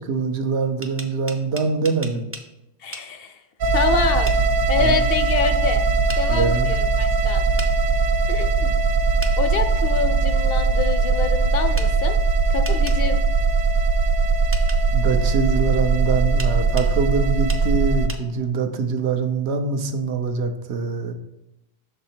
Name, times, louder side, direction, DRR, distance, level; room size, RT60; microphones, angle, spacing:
voice 1, 0.0-2.3 4.8-5.0 6.3-6.8 14.9-21.1, right 5 dB, 80° right, 6 dB, 1.0 m, -24 dB
sound 1, 0.6-2.5 2.9-3.1 4.3-4.4 6.1-6.2 7.6-7.7 9.2-9.4 11.8-11.9 12.6-13.0 14.5-14.8 16.4-16.9 17.5-17.6 18.1-18.2, right 2 dB, 20° right, 0.3 m, -35 dB
voice 2, 2.8-3.4 3.7-4.3 4.7-5.8 6.2-7.5 8.3-8.7 9.4-12.2 12.5-13.2, left 5 dB, 65° left, 9 dB, 0.7 m, -26 dB
sound 2, 3.6-18.1, right 4 dB, 60° right, 0.6 m, -20 dB
6.3 x 4.4 x 4.3 m, 0.90 s
omnidirectional pair, 1.1 m